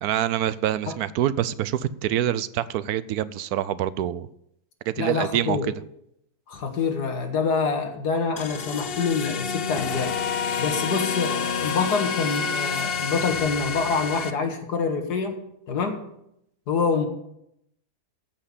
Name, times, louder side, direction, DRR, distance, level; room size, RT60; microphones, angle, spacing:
voice 1, 0.0-4.3 4.9-5.7, right 11 dB, 75° right, 16 dB, 1.1 m, -26 dB
voice 2, 5.0-5.7 6.5-10.1 10.6-15.4 15.7-16.0 16.7-17.1, left 5 dB, 80° left, 4 dB, 2.3 m, -26 dB
sound 1, 8.4-14.3, left 6 dB, 50° left, 0.7 m, -28 dB
13.5 x 5.7 x 8.4 m, 0.77 s
omnidirectional pair, 1.7 m